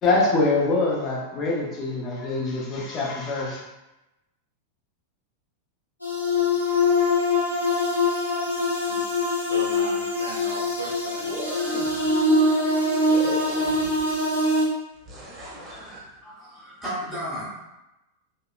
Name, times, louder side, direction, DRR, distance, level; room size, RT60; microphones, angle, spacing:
voice 1, 0.0-3.6, left 3 dB, 30° left, -4 dB, 0.6 m, -24 dB
sound 1, 6.0-14.7, left 2 dB, 85° left, 0.5 m, -23 dB
voice 2, 8.8-11.2, right 2 dB, 80° right, -2 dB, 0.4 m, -37 dB
sound 2, 11.2-12.1 13.1-14.2 15.1-16.0, left 1 dB, 25° right, 0.6 m, -37 dB
voice 3, 15.5-17.6, equal, 5° left, -11 dB, 0.9 m, -35 dB
2.7 x 2.0 x 2.3 m, 0.98 s
figure-of-eight pair, 90°, 0 cm